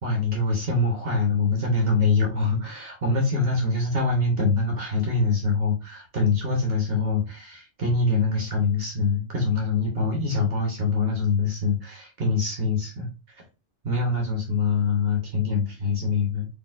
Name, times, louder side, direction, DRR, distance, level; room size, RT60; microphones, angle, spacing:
voice 1, 0.0-13.4 13.8-16.5, left 3 dB, 60° right, 1 dB, 1.1 m, -24 dB
4.0 x 3.2 x 2.4 m, 0.29 s
omnidirectional pair, 1.2 m